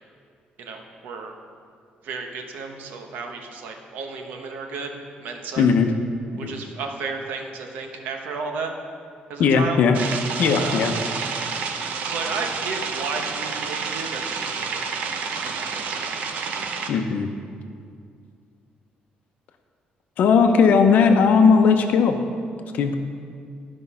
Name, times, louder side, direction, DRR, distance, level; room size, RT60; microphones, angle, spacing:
voice 1, 0.6-1.3 2.0-4.9 5.2-5.6 6.4-8.7 9.3-9.8 10.6-10.8 12.0-15.1 15.4-16.1, right 4 dB, 80° right, 3 dB, 1.1 m, -33 dB
voice 2, 5.6-5.9 6.3-6.5 9.4-10.0 10.4-10.9 16.9-17.3 20.2-22.2 22.7-23.0, left 5 dB, 60° left, 6 dB, 0.7 m, -17 dB
sound 1, 9.9-16.9, right 5 dB, 60° right, 0.7 m, -29 dB
11.5 x 5.4 x 5.6 m, 2.3 s
cardioid pair, 180°, 3 cm